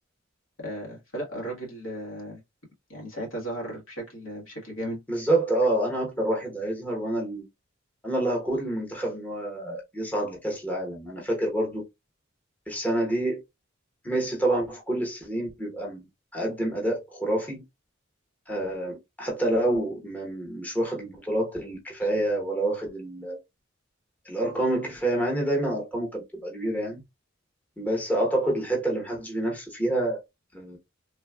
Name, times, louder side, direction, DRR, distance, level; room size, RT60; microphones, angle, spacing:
voice 1, 0.6-2.4 2.9-5.0 22.0-22.1, right 1 dB, 90° left, 1.3 m, -35 dB
voice 2, 5.1-7.4 8.0-11.8 12.7-13.4 14.0-16.0 16.3-17.6 18.5-23.4 24.2-27.0 27.8-30.2 30.5-30.8, right 1 dB, 10° left, 0.9 m, -27 dB
3.2 x 2.2 x 2.2 m
head